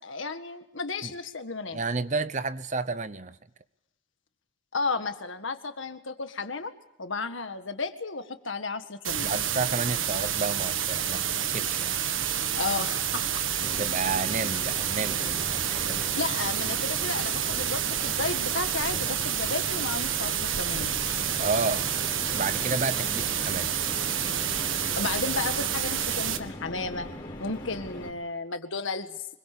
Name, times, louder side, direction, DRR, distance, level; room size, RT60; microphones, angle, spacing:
voice 1, 0.0-1.8 4.7-6.7 7.0-9.3 12.6-13.4 16.2-20.9 25.0-27.1 27.4-29.3, left 4 dB, 75° left, 8 dB, 1.8 m, -33 dB
voice 2, 1.7-3.4 9.2-11.9 13.6-16.1 21.4-21.9 22.3-23.7, right 3 dB, 35° right, 14 dB, 0.8 m, -31 dB
marantz.flash.recorder.noise, 9.0-26.4, right 9 dB, 80° right, 1.6 m, -29 dB
sound 1, 13.6-28.1, left 1 dB, 20° left, 4.5 m, -41 dB
25.5 x 22.5 x 6.9 m, 0.87 s
head